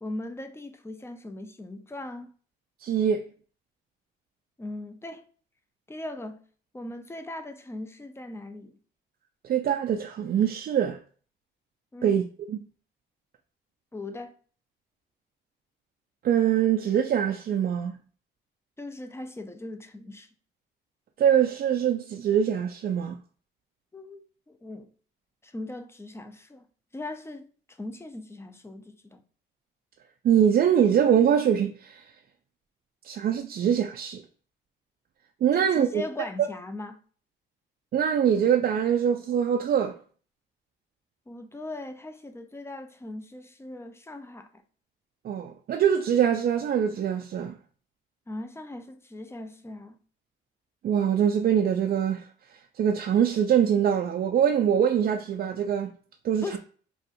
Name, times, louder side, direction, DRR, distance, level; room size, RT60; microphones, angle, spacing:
voice 1, 0.0-2.3 4.6-5.2 5.9-6.4 6.7-8.8 11.9-12.2 13.9-14.3 18.8-20.3 23.9-24.9 25.4-26.6 26.9-27.5 27.8-29.2 35.5-37.0 41.3-44.6 48.3-50.0 56.4-56.6, left 2 dB, 15° left, 0.5 m, -39 dB
voice 2, 2.8-3.2 9.4-11.0 12.0-12.6 16.2-18.0 21.2-23.2 30.2-32.1 33.0-34.2 35.4-36.0 37.9-40.0 45.2-47.5 50.8-55.9 56.2-56.6, right 8 dB, 50° right, 0.4 m, -23 dB
4.1 x 2.3 x 2.6 m
cardioid pair, 90°, 20 cm